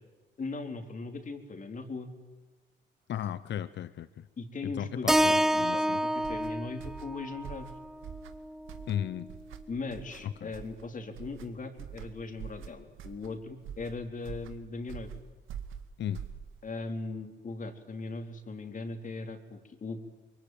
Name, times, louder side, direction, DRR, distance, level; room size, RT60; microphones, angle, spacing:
voice 1, 0.4-2.1 4.4-7.7 9.7-15.2 16.6-20.0, left 3 dB, 40° left, 5 dB, 4.0 m, -39 dB
voice 2, 3.1-4.3 4.8-6.0 8.9-9.3 10.4-10.5 16.0-16.2, left 10 dB, 65° left, 14 dB, 1.0 m, -35 dB
Keyboard (musical), 5.1-9.3, equal, ahead, 0.8 m, -29 dB
sound 1, 6.2-16.8, right 8 dB, 85° right, 2.1 m, -45 dB
24.5 x 23.0 x 9.4 m, 1.2 s
cardioid pair, 90°, 20 cm